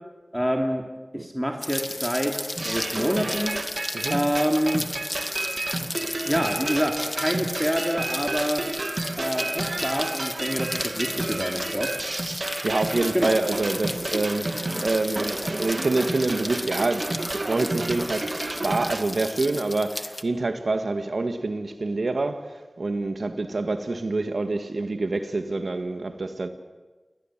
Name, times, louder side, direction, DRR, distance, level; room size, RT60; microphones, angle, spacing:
voice 1, 0.3-0.8 1.1-3.5 4.1-4.9 6.3-8.6 9.2-11.9 13.1-13.4, equal, 5° right, 2.9 m, -26 dB
Rain, 1.6-20.2, left 1 dB, 25° left, 1.3 m, -34 dB
sound 1, 2.6-19.0, right 2 dB, 55° right, 1.7 m, -31 dB
voice 2, 12.6-17.2 17.5-26.5, right 2 dB, 80° right, 1.9 m, -27 dB
28.0 x 20.5 x 7.6 m
wide cardioid pair, 60°, 0 cm